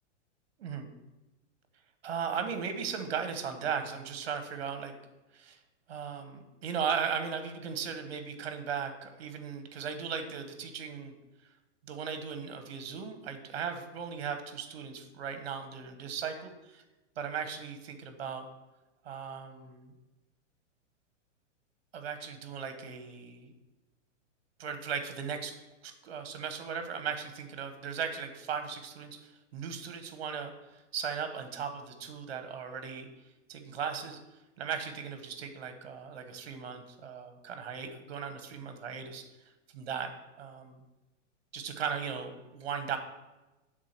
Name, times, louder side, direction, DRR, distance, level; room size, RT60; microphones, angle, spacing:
voice 1, 0.6-0.9 2.0-4.9 5.3-5.6 5.9-11.1 11.8-16.8 17.2-18.4 19.0-19.9 21.9-23.5 24.6-25.5 25.8-33.1 33.5-34.2 34.6-39.2 39.7-40.1 40.4-40.8 41.5-43.0, right 7 dB, 55° right, 7 dB, 1.3 m, -37 dB
7.5 x 3.8 x 6.6 m, 1.0 s
hypercardioid pair, 170°, 37 cm